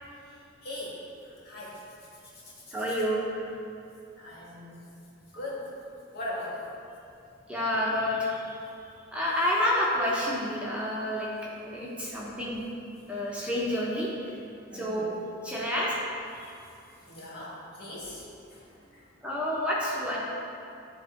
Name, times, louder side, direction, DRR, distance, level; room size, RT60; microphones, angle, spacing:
voice 1, 0.2-2.7 4.2-4.8 5.3-5.7 6.1-6.7 11.4-11.5 11.8-12.3 14.7-15.1 16.4-16.5 17.0-19.1, left 1 dB, 55° left, -6 dB, 1.7 m, -41 dB
voice 2, 2.7-3.4 7.5-8.6 9.1-11.3 11.7-12.6 13.1-14.2 14.7-15.1 15.4-15.9 16.4-16.5 19.2-20.2, left 1 dB, 5° right, -6 dB, 0.8 m, -29 dB
10.5 x 3.6 x 4.4 m, 2.6 s
head